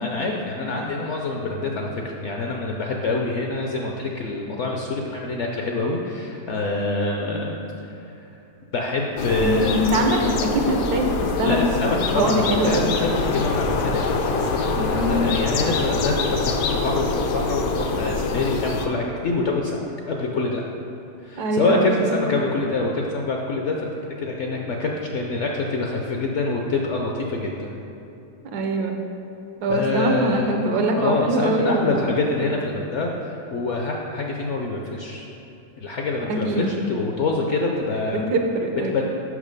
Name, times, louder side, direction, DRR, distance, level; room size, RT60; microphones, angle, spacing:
voice 1, 0.0-7.9 8.7-9.9 11.4-20.6 21.2-27.7 29.7-30.7 31.0-35.3 35.8-38.2 38.9-39.0, left 3 dB, 65° left, 0 dB, 0.7 m, -26 dB
sound 1, 9.2-18.9, left 3 dB, 85° left, 1.3 m, -24 dB
voice 2, 9.4-11.6 12.1-13.0 14.8-15.3 21.4-22.1 28.4-28.9 29.6-32.1 36.3-36.8 38.1-39.0, right 1 dB, 75° right, 3 dB, 1.3 m, -23 dB
6.3 x 5.7 x 5.2 m, 2.8 s
omnidirectional pair, 1.8 m